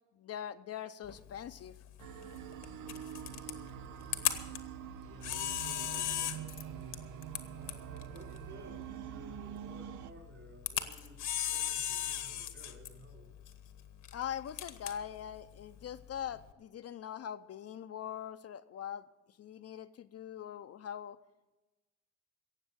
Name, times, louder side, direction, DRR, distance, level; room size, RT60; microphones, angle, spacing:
voice 1, 0.2-1.7 14.1-19.0 19.4-21.2, left 9 dB, 55° left, 10 dB, 0.6 m, -42 dB
Camera, 1.0-16.5, left 10 dB, 80° left, 1.3 m, -40 dB
sound 1, 2.0-10.1, right 12 dB, 80° right, 0.7 m, -45 dB
voice 2, 5.0-13.3, right 2 dB, 50° right, 0 dB, 4.7 m, -54 dB
17.5 x 7.3 x 7.5 m, 1.1 s
cardioid pair, 90°, 30 cm